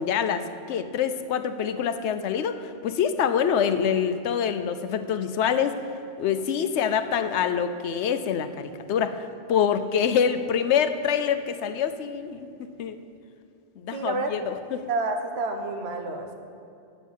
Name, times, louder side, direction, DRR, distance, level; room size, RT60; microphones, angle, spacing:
voice 1, 0.0-5.8 6.2-9.2 9.5-13.0 13.8-14.8, left 8 dB, 85° left, 10 dB, 0.9 m, -25 dB
voice 2, 13.9-14.3 14.9-16.3, right 3 dB, 70° right, 4 dB, 1.2 m, -29 dB
9.2 x 6.9 x 7.2 m, 2.6 s
omnidirectional pair, 1.1 m